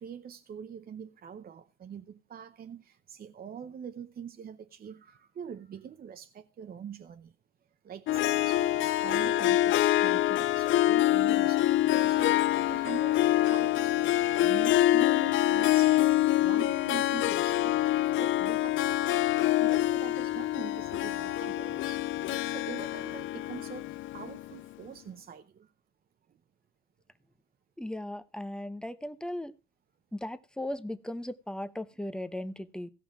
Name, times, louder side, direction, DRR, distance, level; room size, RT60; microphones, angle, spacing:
voice 1, 0.0-7.4 7.8-16.1 16.4-19.2 19.6-25.7 26.3-26.4, right 8 dB, 50° right, 0.7 m, -44 dB
Harp, 8.1-24.6, left 14 dB, 75° left, 0.5 m, -26 dB
voice 2, 27.8-29.5 30.1-32.9, left 1 dB, 5° left, 0.9 m, -37 dB
16.5 x 5.5 x 6.0 m
cardioid pair, 90°, 20 cm